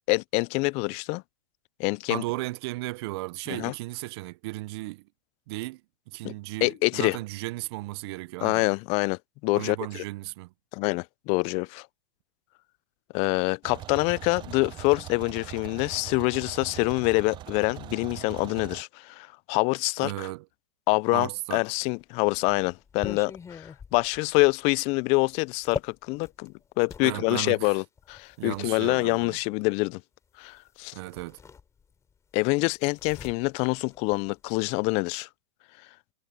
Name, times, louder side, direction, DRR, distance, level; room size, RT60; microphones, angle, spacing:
voice 1, 0.1-1.2 1.8-2.2 3.5-3.7 6.2-6.3 6.6-7.2 8.4-10.0 10.7-11.9 13.1-20.1 20.9-30.0 30.4-30.9 32.3-35.3, left 28 dB, 40° left, 0.5 m, -26 dB
voice 2, 2.1-5.1 5.5-5.8 6.1-8.6 9.5-10.5 20.0-20.5 21.1-21.6 27.0-27.8 28.4-29.4 30.9-31.4, right 21 dB, 55° right, 0.9 m, -35 dB
sound 1, 13.6-18.8, right 14 dB, 30° right, 0.7 m, -41 dB
sound 2, 21.7-27.1 28.0-29.3 30.6-30.7 31.0-32.1 32.4-34.6, left 6 dB, 20° left, 4.4 m, -42 dB
hypercardioid pair, 120°, 16 cm